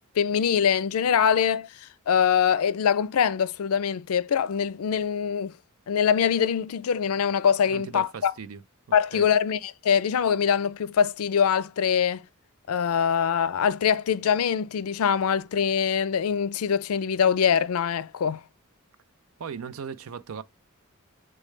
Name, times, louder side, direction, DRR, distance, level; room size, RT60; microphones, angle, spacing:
voice 1, 0.2-1.7 2.1-5.5 5.9-8.3 8.9-12.2 12.7-18.4, left 7 dB, 85° left, 0.4 m, -23 dB
voice 2, 7.7-8.6 9.1-9.3 19.4-20.4, right 6 dB, 70° right, 0.5 m, -37 dB
6.4 x 2.3 x 3.2 m
head